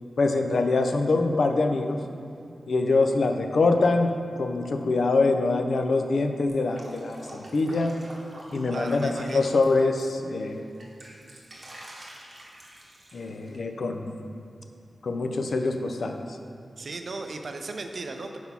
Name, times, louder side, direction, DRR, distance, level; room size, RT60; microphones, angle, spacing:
voice 1, 0.2-2.0 2.7-8.0 8.5-10.6 13.1-14.2 15.0-16.4, left 3 dB, 75° left, 5 dB, 0.4 m, -24 dB
Drip, 6.5-10.0 10.4-13.6, right 1 dB, 45° right, 1.0 m, -46 dB
voice 2, 8.7-9.5 16.8-18.4, right 3 dB, 65° right, 5 dB, 0.4 m, -36 dB
4.4 x 4.0 x 5.4 m, 2.3 s
wide cardioid pair, 75°, 0 cm